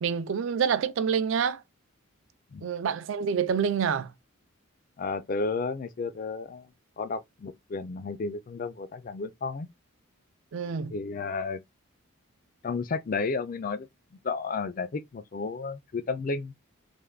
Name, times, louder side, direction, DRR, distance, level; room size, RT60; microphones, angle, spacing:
voice 1, 0.0-1.6 2.6-4.1 10.5-10.9, right 7 dB, 60° right, 0.3 m, -27 dB
voice 2, 5.0-6.6 7.0-9.7 10.9-11.6 12.6-13.9 14.2-16.5, left 4 dB, 40° left, 0.3 m, -32 dB
3.3 x 2.2 x 2.3 m
head